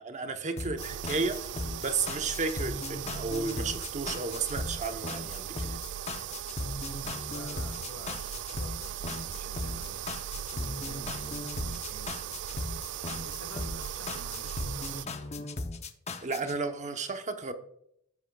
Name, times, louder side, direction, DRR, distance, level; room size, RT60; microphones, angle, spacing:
voice 1, 0.0-5.8 16.2-17.5, right 4 dB, 35° right, 7 dB, 0.9 m, -33 dB
sound 1, 0.6-16.6, left 2 dB, 30° left, 0.7 m, -37 dB
sound 2, 0.8-15.1, right 11 dB, 55° right, 0.3 m, -38 dB
voice 2, 7.2-10.2 10.5-12.5 13.2-15.4, left 2 dB, 80° left, 4 dB, 2.0 m, -50 dB
17.0 x 7.7 x 2.3 m, 0.74 s
head